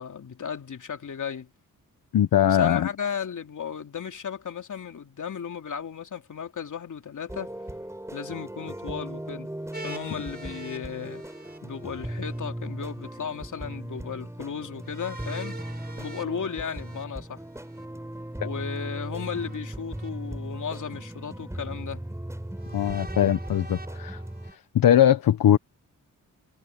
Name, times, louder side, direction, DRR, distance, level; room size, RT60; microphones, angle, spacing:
voice 1, 0.0-1.5 2.5-7.5 8.1-11.2 11.6-15.6 16.0-17.4 18.4-22.1, left 7 dB, 60° left, 3.0 m, -35 dB
voice 2, 2.1-2.9 22.7-24.2 24.7-25.6, left 10 dB, 80° left, 1.2 m, -20 dB
sound 1, 7.3-24.5, right 1 dB, 10° right, 5.3 m, -37 dB
sound 2, 9.7-12.4 14.8-17.8 19.1-20.1 20.8-20.9 22.6-24.6, right 2 dB, 30° right, 5.0 m, -45 dB
cardioid pair, 65°, 34 cm